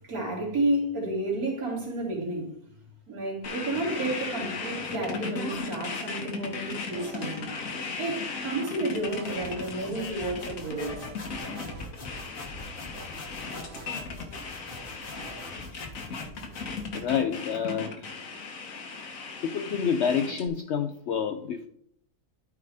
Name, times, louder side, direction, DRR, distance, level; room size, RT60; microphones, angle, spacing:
voice 1, 0.0-2.5 3.1-7.5 8.0-11.0, right 2 dB, 65° right, 3.3 m, -31 dB
sound 1, 3.4-20.5, left 4 dB, 60° left, 1.4 m, -36 dB
sound 2, 6.9-7.5 7.8-7.9 8.2-9.7 9.9-10.0 10.4-11.9 12.1-12.2 12.6-14.4 14.7-15.5, right 4 dB, 45° right, 1.3 m, -47 dB
sound 3, 8.9-17.5, left 2 dB, 35° left, 1.5 m, -44 dB
voice 2, 16.9-18.1 19.4-21.7, left 7 dB, 80° left, 0.6 m, -28 dB
12.5 x 4.9 x 3.5 m
omnidirectional pair, 1.7 m